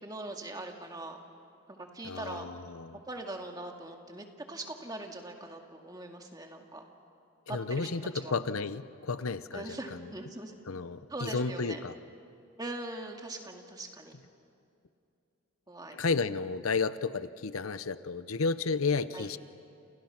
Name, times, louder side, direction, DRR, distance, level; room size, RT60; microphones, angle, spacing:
voice 1, 0.0-1.2 1.7-2.5 2.9-6.8 7.5-7.9 8.1-8.3 9.5-10.5 11.1-11.8 12.6-14.2 15.7-16.2 19.1-19.3, right 2 dB, 20° right, 3 dB, 2.1 m, -41 dB
voice 2, 2.0-3.0 7.5-10.1 10.7-11.9 15.9-19.4, left 4 dB, 85° left, 14 dB, 0.8 m, -32 dB
29.5 x 29.0 x 6.0 m, 2.5 s
head